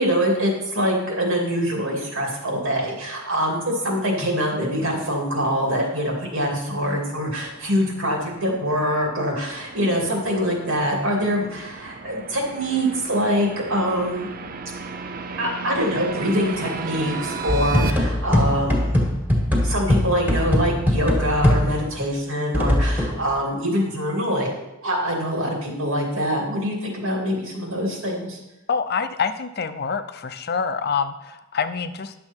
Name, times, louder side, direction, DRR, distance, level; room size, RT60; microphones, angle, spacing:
voice 1, 0.0-14.3 15.4-18.9 19.6-28.4, equal, 75° right, -1 dB, 2.6 m, -24 dB
sound 1, 6.4-17.9, right 4 dB, 45° right, 0.6 m, -35 dB
sound 2, 17.5-22.0 22.5-23.2, left 1 dB, 10° right, 1.7 m, -21 dB
voice 2, 28.7-32.1, left 6 dB, 50° left, 11 dB, 0.6 m, -26 dB
10.5 x 6.9 x 4.5 m, 0.96 s
head